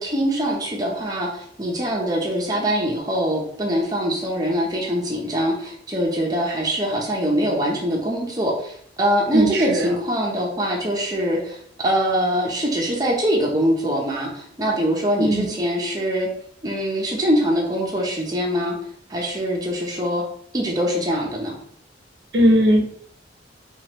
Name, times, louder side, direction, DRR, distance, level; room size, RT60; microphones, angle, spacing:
voice 1, 0.0-11.6 11.8-16.3 16.6-18.8 19.1-20.2 20.5-21.6, equal, 20° right, -2 dB, 0.7 m, -23 dB
voice 2, 9.3-9.9 15.2-15.6 22.3-22.9, equal, 60° right, 1 dB, 0.7 m, -18 dB
4.8 x 2.4 x 3.0 m, 0.64 s
head